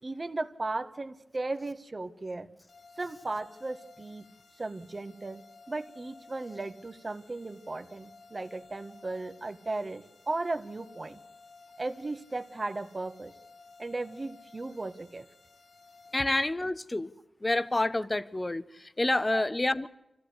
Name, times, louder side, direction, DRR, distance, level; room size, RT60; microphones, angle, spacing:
voice 1, 0.0-2.5 3.0-4.3 4.6-5.4 5.7-11.2 11.8-13.3 13.8-15.3 19.3-19.4, right 2 dB, 40° right, 1.6 m, -36 dB
sound 1, 2.7-16.2, left 4 dB, 65° left, 2.3 m, -56 dB
voice 2, 16.1-17.1 17.4-19.9, left 2 dB, 30° left, 1.0 m, -28 dB
25.0 x 16.0 x 8.1 m
cardioid pair, 55°, 0 cm